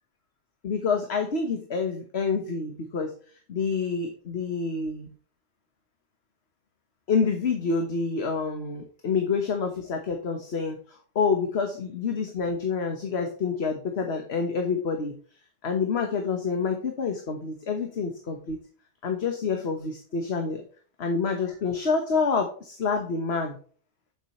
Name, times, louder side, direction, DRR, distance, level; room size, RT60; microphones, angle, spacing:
voice 1, 0.6-3.1 3.5-5.1 7.1-15.2 15.6-18.6 19.0-20.6 21.0-23.6, left 5 dB, 60° left, 4 dB, 1.5 m, -27 dB
9.0 x 7.4 x 3.1 m, 0.41 s
omnidirectional pair, 1.2 m